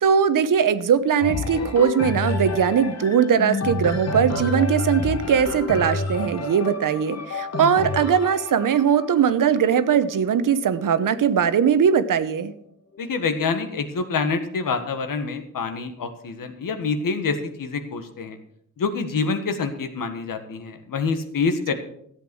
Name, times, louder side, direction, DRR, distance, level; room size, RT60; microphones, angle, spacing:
voice 1, 0.0-12.5, right 7 dB, 75° right, 13 dB, 1.0 m, -20 dB
sound 1, 1.2-11.0 11.6-11.7, left 3 dB, 50° left, 1.4 m, -29 dB
voice 2, 13.0-18.4 18.8-21.7, left 4 dB, 85° left, 7 dB, 1.7 m, -26 dB
14.0 x 8.1 x 6.3 m, 0.69 s
wide cardioid pair, 120°, 32 cm